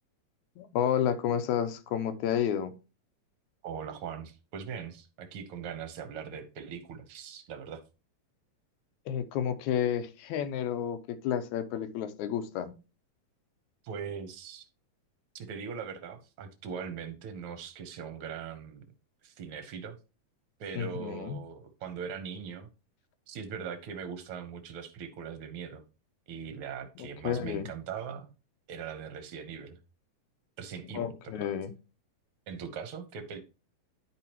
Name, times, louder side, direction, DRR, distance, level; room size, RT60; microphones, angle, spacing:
voice 1, 0.6-2.7 9.1-12.7 20.7-21.4 27.2-27.7 30.9-31.7, left 9 dB, 80° left, 2.2 m, -31 dB
voice 2, 3.6-7.8 13.8-14.7 15.3-18.9 19.2-20.0 20.6-22.7 23.3-25.8 26.3-28.3 28.7-29.8 30.6-31.5 32.5-33.4, right 7 dB, 60° right, 1.7 m, -40 dB
11.0 x 5.0 x 3.0 m
omnidirectional pair, 3.3 m